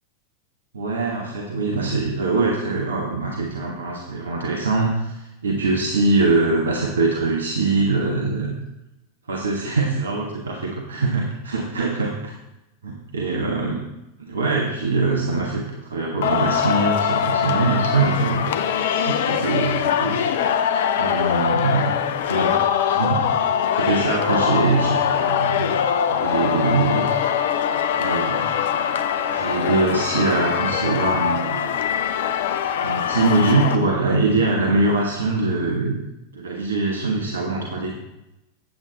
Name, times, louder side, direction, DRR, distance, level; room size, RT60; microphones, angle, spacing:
voice 1, 0.7-8.5 9.3-12.3 12.8-13.8 14.2-18.5 19.1-20.3 21.0-22.0 22.3-22.6 22.9-23.3 23.7-25.7 26.1-27.1 28.0-28.5 29.3-31.7 32.8-36.0 36.3-38.0, right 3 dB, 70° right, -1 dB, 1.3 m, -23 dB
Singing, 16.2-33.8, left 8 dB, 55° left, 0.6 m, -22 dB
8.7 x 8.2 x 3.9 m, 0.94 s
figure-of-eight pair, 90°, 0 cm